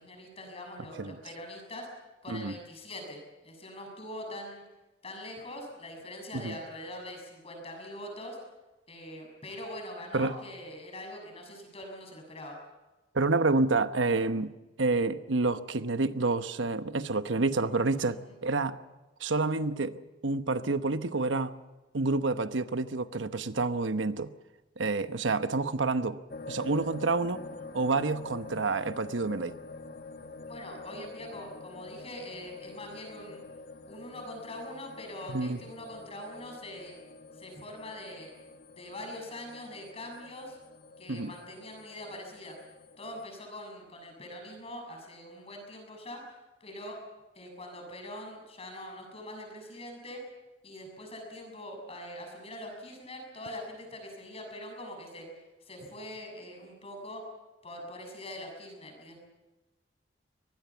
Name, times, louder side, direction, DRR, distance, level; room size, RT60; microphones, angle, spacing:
voice 1, 0.0-1.9 2.2-4.6 5.0-8.4 8.9-12.6 18.0-18.3 30.5-33.4 33.9-36.9 37.3-38.4 38.7-40.6 41.0-42.5 43.0-46.2 46.6-47.0 47.3-50.2 50.6-55.3 55.6-57.2 57.6-59.2, left 1 dB, 35° left, 3 dB, 6.8 m, -43 dB
voice 2, 13.1-14.5 14.8-18.8 19.2-21.5 21.9-24.3 24.8-26.2 26.5-27.4 27.7-29.5 35.3-35.6 41.1-41.3, right 3 dB, 85° right, 11 dB, 1.0 m, -28 dB
sound 1, 26.3-43.2, left 3 dB, 55° left, 1.6 m, -46 dB
24.0 x 20.0 x 7.1 m, 1.1 s
head